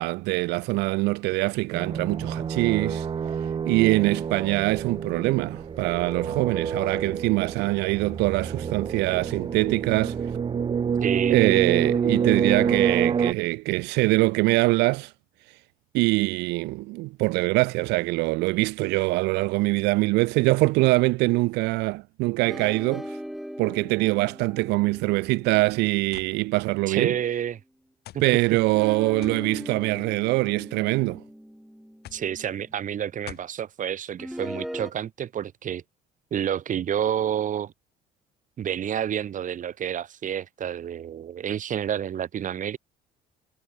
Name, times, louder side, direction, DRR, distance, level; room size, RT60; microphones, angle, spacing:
voice 1, 0.0-3.1 3.6-10.2 11.3-15.1 15.5-15.6 15.9-23.2 23.6-27.2 28.2-31.2, right 23 dB, 90° right, 0.4 m, -23 dB
sound 1, 1.7-13.3, right 6 dB, 30° right, 0.7 m, -28 dB
voice 2, 11.0-11.6 26.9-27.6 28.1-28.2 32.1-35.8 36.3-37.7 38.6-42.8, right 9 dB, 50° right, 2.5 m, -29 dB
sound 2, 22.5-27.0 28.7-32.9 34.2-34.9, equal, ahead, 3.5 m, -40 dB
sound 3, 26.1-26.4 27.3-27.4 28.1-28.3 29.2-29.5 30.5-30.9 32.0-32.3 33.3-33.6, left 14 dB, 70° left, 7.4 m, -44 dB
cardioid pair, 110°, 17 cm